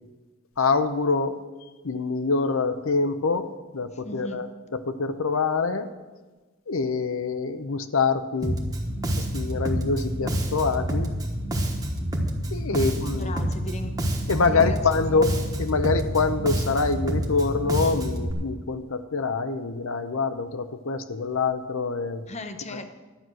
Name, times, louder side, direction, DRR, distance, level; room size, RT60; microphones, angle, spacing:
voice 1, 0.6-1.4 1.8-5.9 6.7-8.6 9.2-11.1 12.5-13.3 14.3-15.3 15.6-22.2 22.7-22.8, left 4 dB, 65° left, 10 dB, 0.7 m, -25 dB
voice 2, 4.0-4.4 13.1-14.0 14.5-14.8 15.1-15.3 22.3-22.8, left 2 dB, 30° left, 8 dB, 0.8 m, -36 dB
Bass guitar, 8.4-18.3, equal, 15° right, 1.2 m, -28 dB
12.0 x 9.1 x 6.2 m, 1.3 s
head